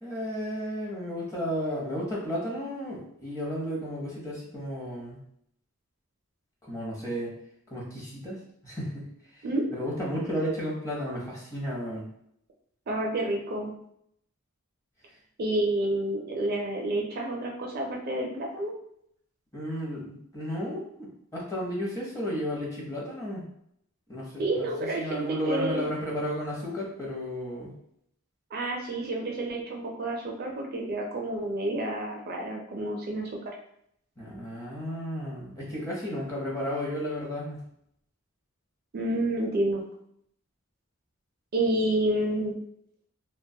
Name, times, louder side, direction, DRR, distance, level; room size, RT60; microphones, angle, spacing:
voice 1, 0.0-5.2 6.7-7.3 7.7-8.4 8.6-9.4 9.7-12.0 19.5-23.4 24.1-24.7 25.0-27.7 34.2-37.6, equal, 15° left, -4 dB, 0.7 m, -33 dB
voice 2, 12.9-13.7 15.4-18.7 24.4-25.8 28.5-33.3 38.9-39.8 41.5-42.6, right 1 dB, 45° right, 0 dB, 0.4 m, -29 dB
2.4 x 2.2 x 2.6 m, 0.72 s
head